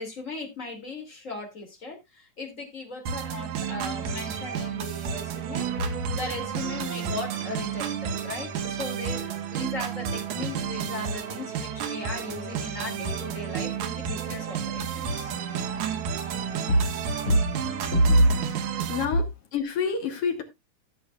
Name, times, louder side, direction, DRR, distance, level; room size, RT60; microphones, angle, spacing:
voice 1, 0.0-15.3 16.7-16.8 17.3-17.5 17.9-18.3, equal, 25° left, 2.8 m, -31 dB
sound 1, 3.1-19.1, right 8 dB, 80° right, 2.6 m, -31 dB
voice 2, 18.9-19.3 19.5-20.4, left 6 dB, 60° left, 2.1 m, -27 dB
16.0 x 7.4 x 2.4 m
omnidirectional pair, 3.4 m